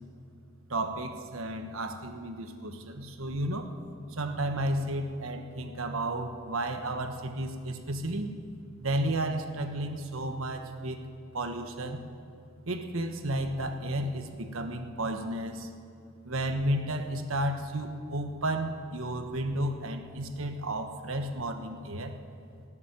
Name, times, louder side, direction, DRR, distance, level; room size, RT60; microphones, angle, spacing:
voice 1, 0.7-3.7 4.1-8.3 8.8-11.0 11.3-12.0 12.7-15.7 16.2-22.1, right 1 dB, 70° right, 6 dB, 1.3 m, -32 dB
18.0 x 7.4 x 9.6 m, 2.4 s
head